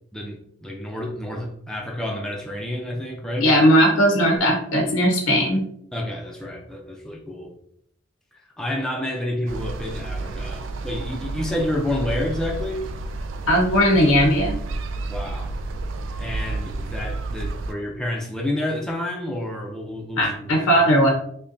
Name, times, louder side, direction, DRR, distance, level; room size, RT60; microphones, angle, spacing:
voice 1, 0.1-3.5 5.9-7.5 8.6-12.8 15.1-15.6 16.2-20.9, left 1 dB, 5° left, -1 dB, 0.4 m, -29 dB
voice 2, 3.4-5.6 13.5-14.6 20.2-21.1, equal, 85° left, 2 dB, 0.7 m, -18 dB
sound 1, 9.5-17.7, right 3 dB, 65° right, 0.3 m, -31 dB
5.3 x 2.2 x 2.6 m, 0.68 s
head